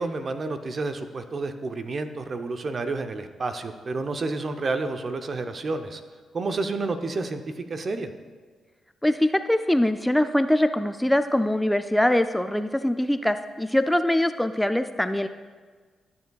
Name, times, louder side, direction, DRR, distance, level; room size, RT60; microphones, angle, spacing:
voice 1, 0.0-6.0 6.3-7.4 7.7-8.1, right 3 dB, 50° right, 8 dB, 0.7 m, -30 dB
voice 2, 9.0-15.3, left 1 dB, 5° left, 10 dB, 0.4 m, -23 dB
13.0 x 6.9 x 2.3 m, 1.5 s
supercardioid pair, 50°, 0 cm